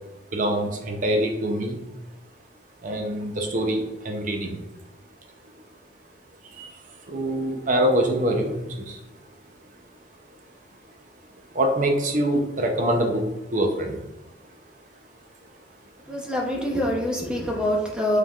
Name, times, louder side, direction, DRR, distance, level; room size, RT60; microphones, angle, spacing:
voice 1, 0.3-1.8 2.8-4.6 6.5-9.0 11.5-14.0, right 1 dB, 45° right, 2 dB, 0.6 m, -25 dB
voice 2, 16.1-18.2, left 1 dB, 5° right, -1 dB, 0.6 m, -25 dB
5.4 x 3.2 x 2.3 m, 1.0 s
head